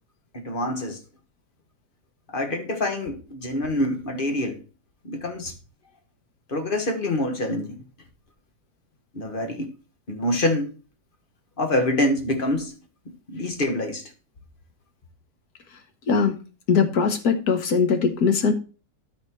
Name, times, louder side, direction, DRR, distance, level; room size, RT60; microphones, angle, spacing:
voice 1, 0.3-1.0 2.3-4.6 5.0-5.5 6.5-7.8 9.1-9.7 10.1-10.7 11.6-12.7 13.3-14.0, left 1 dB, 35° left, 1.6 m, -26 dB
voice 2, 16.7-18.5, left 5 dB, 75° left, 1.8 m, -20 dB
12.5 x 4.3 x 4.5 m
omnidirectional pair, 1.7 m